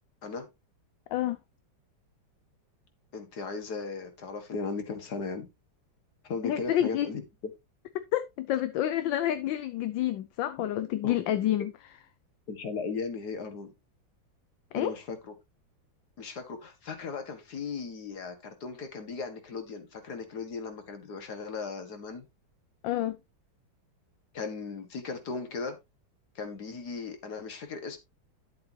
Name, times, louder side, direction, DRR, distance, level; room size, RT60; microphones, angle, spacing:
voice 1, 3.1-5.5 6.2-7.2 11.0-11.2 12.5-13.7 14.7-15.3 16.2-22.3 24.3-25.8 26.4-28.0, left 4 dB, 55° left, 2.2 m, -37 dB
voice 2, 6.4-7.1 8.1-11.7 14.7-15.0 22.8-23.2, left 12 dB, 75° left, 1.4 m, -28 dB
11.0 x 7.7 x 2.9 m
omnidirectional pair, 2.1 m